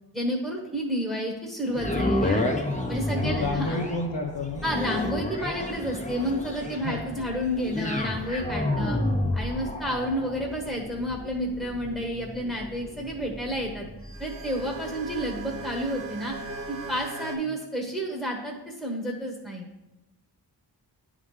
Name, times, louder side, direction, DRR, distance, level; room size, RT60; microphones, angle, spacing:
voice 1, 0.1-2.5 2.9-3.8 4.6-9.0 9.3-13.9 14.2-16.3 16.7-19.7, equal, ahead, -1 dB, 1.2 m, -30 dB
sound 1, 1.7-15.9 16.4-16.5, left 1 dB, 15° left, 0.8 m, -31 dB
voice 2, 3.1-4.6 6.8-7.2, left 3 dB, 90° left, -3 dB, 0.8 m, -30 dB
sound 2, 5.3-13.7, left 1 dB, 65° left, 1.1 m, -44 dB
sound 3, 14.0-17.4, right 3 dB, 30° right, 1.3 m, -39 dB
9.5 x 3.7 x 3.3 m, 0.94 s
cardioid pair, 40°, 42 cm